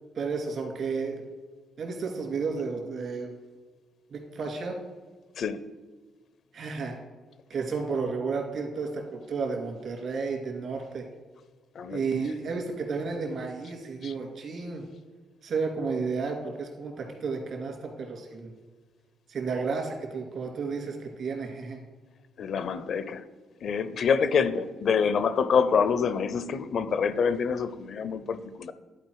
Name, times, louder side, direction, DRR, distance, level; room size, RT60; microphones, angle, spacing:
voice 1, 0.1-1.3 1.8-3.3 4.1-4.8 6.5-7.0 7.5-11.0 11.9-14.9 15.4-18.5 19.3-21.8, right 4 dB, 60° right, 2 dB, 2.2 m, -32 dB
voice 2, 22.4-23.2 23.6-28.7, left 6 dB, 60° left, 14 dB, 0.5 m, -26 dB
11.0 x 4.4 x 4.6 m, 1.4 s
cardioid pair, 90°, 0 cm